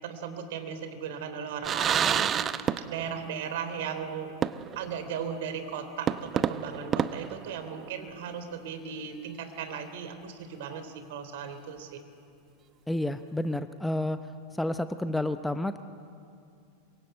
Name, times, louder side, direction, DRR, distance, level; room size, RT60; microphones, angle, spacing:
voice 1, 0.0-2.6 2.9-4.4 4.8-12.0, right 7 dB, 55° right, 8 dB, 3.5 m, -37 dB
sound 1, 1.6-3.2 3.5-3.6 4.4-4.9 5.3-5.4 6.1-8.1, right 8 dB, 25° right, 0.8 m, -29 dB
voice 2, 12.9-14.2 14.5-15.8, left 1 dB, 5° left, 11 dB, 0.8 m, -30 dB
26.5 x 24.5 x 7.9 m, 2.5 s
figure-of-eight pair, 90°, 0 cm